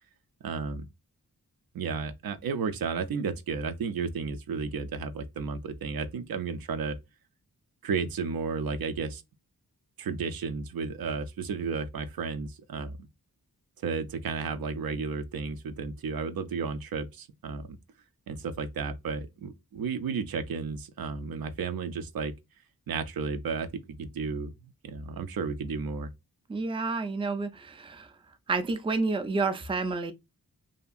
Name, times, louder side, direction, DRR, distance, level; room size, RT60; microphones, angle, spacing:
voice 1, 0.4-0.9 1.7-7.0 7.8-9.2 10.0-13.1 13.8-17.7 18.3-22.3 22.9-24.5 24.8-26.1, right 5 dB, 85° right, 0.5 m, -33 dB
voice 2, 26.5-28.1 28.5-30.1, right 3 dB, 15° right, 0.3 m, -29 dB
2.8 x 2.6 x 2.3 m
wide cardioid pair, 105°, 35 cm